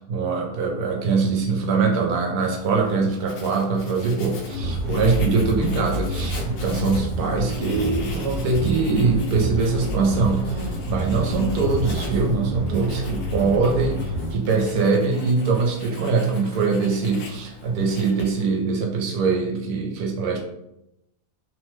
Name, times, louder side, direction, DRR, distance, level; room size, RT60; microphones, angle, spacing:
voice 1, 0.0-20.4, right 4 dB, 75° right, 1 dB, 1.1 m, -23 dB
Writing, 2.4-18.6, left 3 dB, 70° left, 1.0 m, -40 dB
sound 1, 4.5-14.3, equal, 45° right, 0.6 m, -28 dB
2.9 x 2.1 x 3.1 m, 0.81 s
omnidirectional pair, 1.7 m